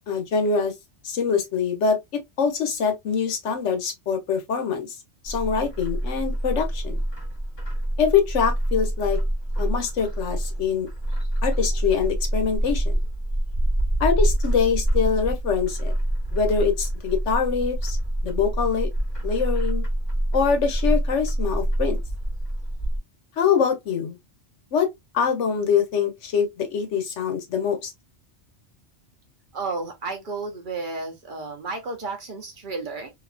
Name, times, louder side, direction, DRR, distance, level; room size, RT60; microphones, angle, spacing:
voice 1, 0.1-0.7 1.0-2.0 2.4-4.9 5.2-7.0 8.0-9.2 9.6-10.9 11.4-12.9 14.0-15.9 16.3-18.0 18.2-18.9 19.2-19.8 20.3-22.0 23.4-24.2 24.7-24.9 25.1-27.9, left 6 dB, 80° left, 1.1 m, -24 dB
Bird, 5.3-23.0, right 1 dB, 25° left, 0.8 m, -26 dB
voice 2, 29.5-33.1, right 3 dB, 55° right, 0.7 m, -32 dB
2.7 x 2.4 x 2.2 m
omnidirectional pair, 1.2 m